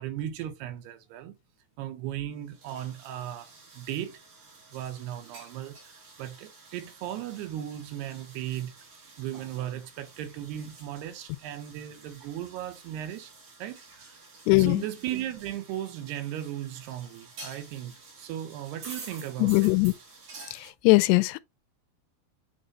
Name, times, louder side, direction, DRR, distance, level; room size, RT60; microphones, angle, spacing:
voice 1, 0.0-1.3 1.8-3.5 3.7-4.2 4.7-8.7 9.2-13.3 13.6-14.1 14.6-19.8, right 11 dB, 85° right, 3.0 m, -36 dB
sound 1, 2.5-20.7, right 3 dB, 50° right, 3.8 m, -50 dB
voice 2, 14.5-14.8 19.4-19.9 20.8-21.4, left 23 dB, 90° left, 2.7 m, -20 dB
8.5 x 3.8 x 3.1 m
omnidirectional pair, 4.7 m